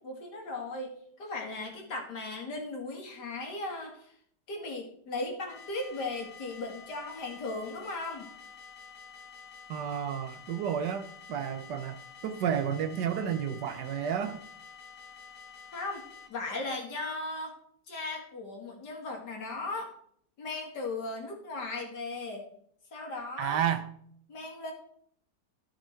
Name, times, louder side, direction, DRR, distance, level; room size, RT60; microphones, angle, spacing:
voice 1, 0.0-4.1 4.5-8.3 15.7-17.6 17.9-19.9 20.4-22.5 22.9-23.6 24.3-24.7, left 2 dB, 80° left, 2.8 m, -37 dB
sound 1, 5.5-16.3, left 6 dB, 35° left, 1.3 m, -49 dB
voice 2, 9.7-14.4 23.4-23.9, right 8 dB, 90° right, 1.5 m, -31 dB
14.0 x 6.0 x 4.5 m
omnidirectional pair, 1.8 m